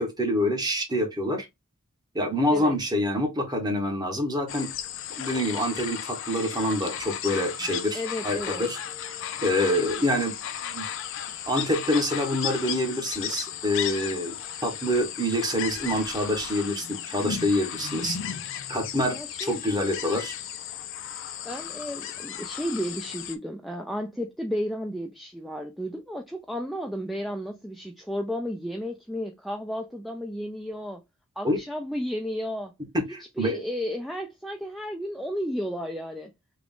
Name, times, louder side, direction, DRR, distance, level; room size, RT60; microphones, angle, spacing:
voice 1, 0.0-1.5 2.1-4.7 5.2-8.8 9.4-10.4 10.6-10.8 11.5-14.4 14.6-18.2 18.7-20.3 31.4-31.6 32.9-33.6, left 1 dB, 20° right, 0.9 m, -26 dB
sound 1, 4.5-23.4, left 9 dB, 60° left, 0.5 m, -35 dB
voice 2, 7.9-8.7 19.1-19.6 21.4-31.0 31.4-32.7 33.4-36.3, equal, ahead, 0.3 m, -33 dB
3.7 x 2.3 x 3.5 m
head